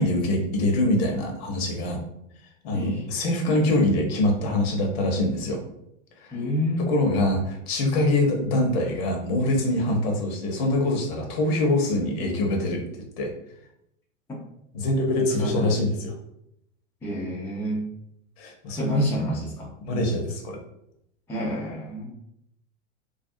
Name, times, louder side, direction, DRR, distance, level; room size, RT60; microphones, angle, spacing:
voice 1, 0.0-2.0 2.6-5.6 6.2-6.3 6.9-12.8 13.2-13.3 14.7-16.1 18.4-18.9 19.8-20.6, left 1 dB, 50° left, 2 dB, 0.8 m, -24 dB
voice 2, 2.7-3.0 6.3-6.9 9.9-10.1 15.4-15.7 17.0-17.9 18.7-19.7 21.3-22.1, equal, 5° left, -5 dB, 0.4 m, -28 dB
2.4 x 2.3 x 2.6 m, 0.78 s
hypercardioid pair, 90°, 39 cm